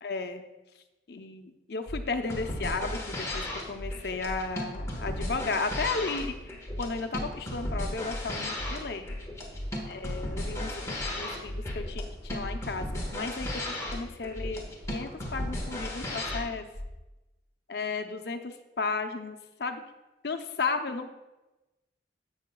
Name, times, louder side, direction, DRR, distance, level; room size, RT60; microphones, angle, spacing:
voice 1, 0.0-0.4 1.1-6.3 6.8-9.1 9.9-16.7 17.7-19.8 20.2-21.1, left 4 dB, 60° left, 6 dB, 0.6 m, -34 dB
sound 1, 1.9-2.0 2.3-2.5 2.8-3.0 3.3-3.5 3.8-3.9 4.3-4.4 4.7-4.9 5.2-5.4 5.7-5.9 6.2-6.3 6.7-6.8 7.1-7.3 7.6-7.8 8.1-8.3 8.6-8.7 9.1-9.2 9.5-9.7 10.0-10.2 10.5-10.7 11.0-11.1 11.5-11.6 11.9-12.1 12.4-12.6 12.9-13.1 13.4-13.5 13.9-14.0 14.3-14.5 14.8-15.0 15.3-15.5 15.8-15.9 16.3-16.4 16.7-16.9, equal, 35° left, 1.5 m, -37 dB
sound 2, 2.2-16.4, left 1 dB, 15° left, 1.2 m, -36 dB
15.0 x 5.7 x 2.3 m, 1.0 s
head